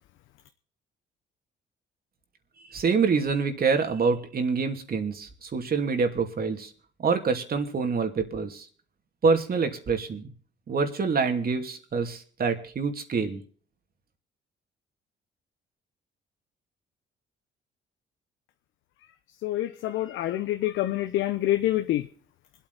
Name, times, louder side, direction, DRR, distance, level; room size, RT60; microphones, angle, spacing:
voice 1, 2.7-6.7 7.0-8.7 9.2-10.3 10.7-13.4, right 5 dB, 50° right, 6 dB, 2.6 m, -26 dB
voice 2, 19.4-22.0, left 14 dB, 90° left, 8 dB, 0.9 m, -26 dB
26.0 x 8.8 x 4.1 m, 0.43 s
cardioid pair, 90°, 20 cm